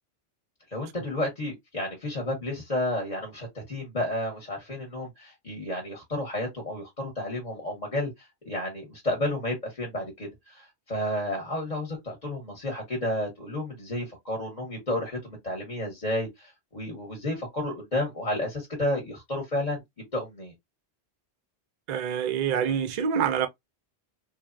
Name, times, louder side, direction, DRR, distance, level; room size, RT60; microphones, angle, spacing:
voice 1, 0.7-20.5, left 1 dB, 40° left, 0.9 m, -31 dB
voice 2, 21.9-23.5, right 8 dB, 55° right, 0.5 m, -26 dB
3.1 x 2.0 x 2.4 m
omnidirectional pair, 1.1 m